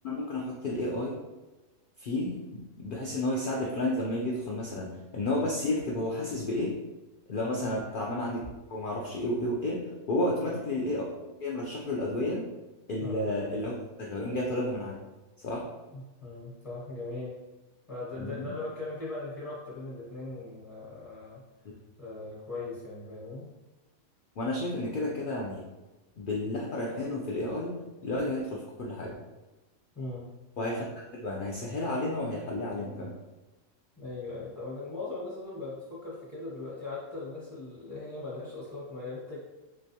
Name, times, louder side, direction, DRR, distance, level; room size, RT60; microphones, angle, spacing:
voice 1, 0.0-1.2 2.0-6.8 7.3-8.4 8.7-12.5 12.9-13.7 14.0-15.0 15.4-15.7 18.2-18.5 24.4-25.6 26.2-27.7 28.0-29.1 30.6-30.8 31.1-33.1, left 1 dB, 80° left, -2 dB, 0.4 m, -31 dB
voice 2, 15.9-17.3 17.9-21.4 22.0-23.5 29.9-30.2 34.0-39.5, left 2 dB, 30° left, -8 dB, 0.9 m, -39 dB
3.3 x 3.0 x 2.7 m, 1.1 s
omnidirectional pair, 1.5 m